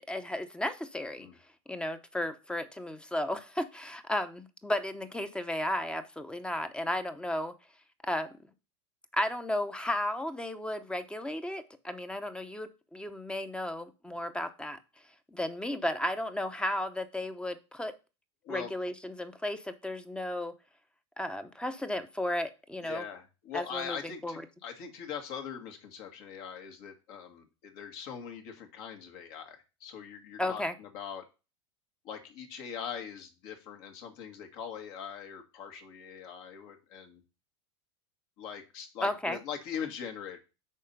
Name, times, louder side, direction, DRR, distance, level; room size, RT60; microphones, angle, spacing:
voice 1, 0.1-1.3 1.7-7.5 8.0-8.3 9.1-14.8 15.3-17.9 18.5-20.5 21.2-23.0 23.5-24.0 24.2-24.4 30.4-30.7 39.0-39.4, left 1 dB, 5° left, 10 dB, 0.8 m, -34 dB
voice 2, 22.8-31.2 32.0-37.2 38.4-40.4, left 7 dB, 55° left, 4 dB, 1.9 m, -41 dB
6.4 x 4.4 x 5.4 m, 0.30 s
hypercardioid pair, 110°, 16 cm